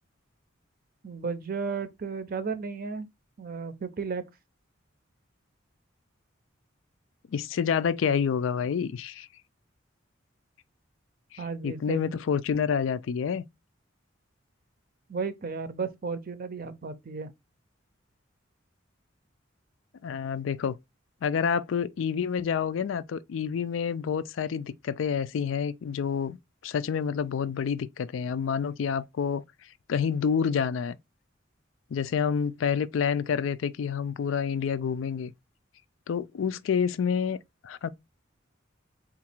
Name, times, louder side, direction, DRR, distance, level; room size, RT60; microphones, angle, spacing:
voice 1, 1.0-3.1 3.4-4.2 11.4-12.2 15.1-17.3, right 5 dB, 45° right, 0.5 m, -34 dB
voice 2, 7.3-9.3 11.3-13.4 20.0-20.8 21.2-26.4 26.6-29.4 29.9-31.0 31.9-35.3 36.1-37.9, left 7 dB, 75° left, 0.4 m, -28 dB
4.0 x 2.4 x 4.4 m
head